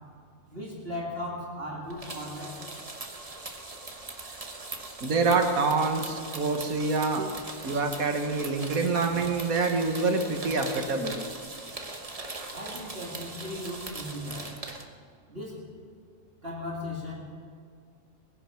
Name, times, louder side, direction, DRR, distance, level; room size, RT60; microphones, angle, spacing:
voice 1, 0.5-2.6 12.5-14.5 15.3-15.6 16.4-17.2, left 1 dB, 45° right, -4 dB, 2.6 m, -37 dB
sound 1, 1.9-14.8, right 2 dB, 25° right, 1.2 m, -41 dB
voice 2, 5.0-7.3 7.6-11.2, right 3 dB, 85° right, 4 dB, 1.9 m, -26 dB
20.5 x 10.5 x 5.8 m, 2.2 s
omnidirectional pair, 1.5 m